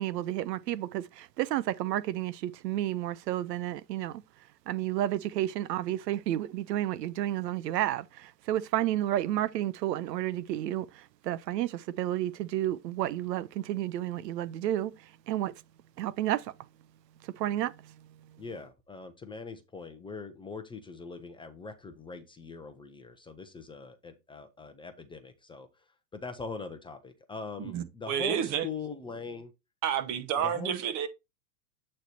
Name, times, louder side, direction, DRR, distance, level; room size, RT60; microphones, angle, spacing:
voice 1, 0.0-4.2 4.7-15.5 16.0-16.5 17.2-17.9, right 13 dB, 75° right, 0.6 m, -31 dB
voice 2, 18.4-25.7 26.1-29.5 30.4-30.8, left 4 dB, 10° left, 0.6 m, -42 dB
voice 3, 27.6-28.7 29.8-31.1, right 9 dB, 35° right, 1.0 m, -30 dB
8.1 x 3.2 x 4.2 m
hypercardioid pair, 115°, 49 cm